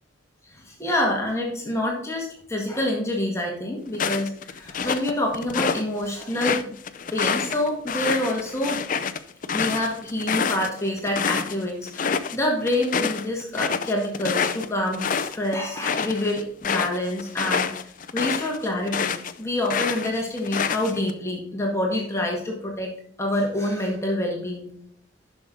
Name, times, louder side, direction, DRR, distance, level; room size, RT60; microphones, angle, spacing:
voice 1, 0.5-6.8 7.1-8.8 9.5-17.7 18.1-22.9 23.2-24.7, left 1 dB, 15° left, 0 dB, 1.7 m, -27 dB
sound 1, 3.9-5.8 6.2-11.5 11.9-12.4 12.7-19.3 19.6-21.1, left 6 dB, 40° left, 0.5 m, -27 dB
11.0 x 6.3 x 3.8 m, 0.67 s
head